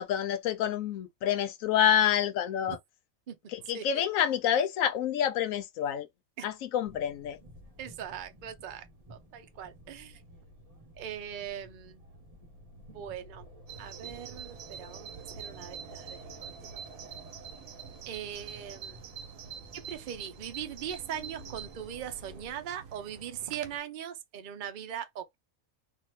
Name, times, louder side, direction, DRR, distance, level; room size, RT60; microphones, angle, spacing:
voice 1, 0.0-2.8 3.5-6.1 6.4-7.4, left 9 dB, 80° left, 1.0 m, -28 dB
sound 1, 6.8-22.5, equal, 30° right, 1.1 m, -52 dB
voice 2, 7.8-8.8 9.1-10.2 11.0-12.0 12.9-13.5 13.8-15.1 15.4-17.1 18.1-19.0 19.7-25.4, right 9 dB, 50° right, 0.6 m, -40 dB
Bird vocalization bird call bird song, 13.7-23.8, right 8 dB, 85° right, 1.0 m, -46 dB
2.7 x 2.5 x 3.0 m
omnidirectional pair, 1.4 m